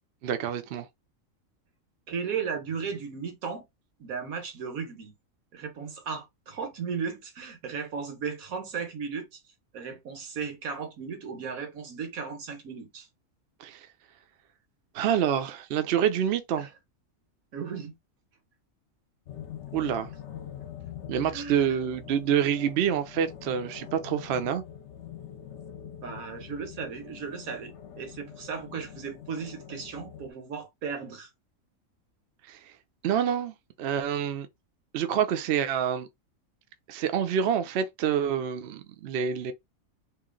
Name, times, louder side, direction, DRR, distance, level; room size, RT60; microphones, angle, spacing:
voice 1, 0.2-0.9 13.6-13.8 14.9-16.7 19.7-20.1 21.1-24.6 32.5-32.6 33.0-34.5 34.9-36.1 36.9-39.5, right 8 dB, 60° right, 0.7 m, -27 dB
voice 2, 2.1-3.6 4.0-5.1 5.5-9.4 9.7-13.1 16.6-16.7 17.5-18.0 21.3-21.8 26.0-31.3, right 6 dB, 90° right, 1.5 m, -36 dB
sound 1, 19.3-30.3, left 10 dB, 60° left, 0.9 m, -44 dB
3.0 x 2.5 x 3.7 m
omnidirectional pair, 1.4 m